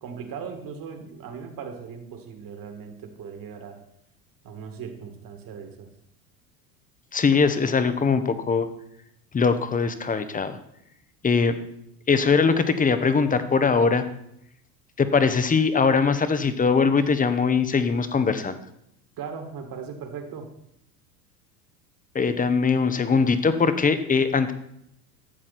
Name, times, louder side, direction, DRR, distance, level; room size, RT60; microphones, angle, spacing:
voice 1, 0.0-3.8 4.4-5.9 19.2-20.5, right 6 dB, 40° right, 6 dB, 2.1 m, -38 dB
voice 2, 7.1-8.7 9.3-10.6 11.2-11.5 12.1-14.0 15.0-18.6 22.1-24.5, left 5 dB, 15° left, 11 dB, 0.8 m, -21 dB
12.0 x 7.5 x 4.3 m, 0.75 s
hypercardioid pair, 90°, 50 cm